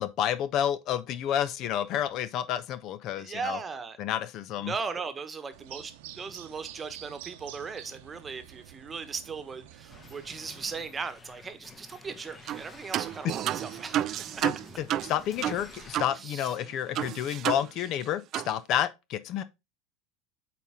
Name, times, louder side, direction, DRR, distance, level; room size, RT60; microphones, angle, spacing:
voice 1, 0.0-3.6 4.0-4.7 14.4-19.4, left 10 dB, 50° left, 0.7 m, -30 dB
voice 2, 3.2-4.0 4.6-14.0 16.1-16.5, right 5 dB, 25° right, 1.2 m, -38 dB
sound 1, 5.5-10.9, right 13 dB, 70° right, 0.8 m, -48 dB
sound 2, 9.9-16.1, left 4 dB, 25° left, 1.2 m, -51 dB
sound 3, 12.5-12.6 12.9-16.1 16.4-16.5 16.9-18.0 18.3-18.5, right 12 dB, 45° right, 0.3 m, -31 dB
8.3 x 4.2 x 3.6 m
hypercardioid pair, 80°, 0 cm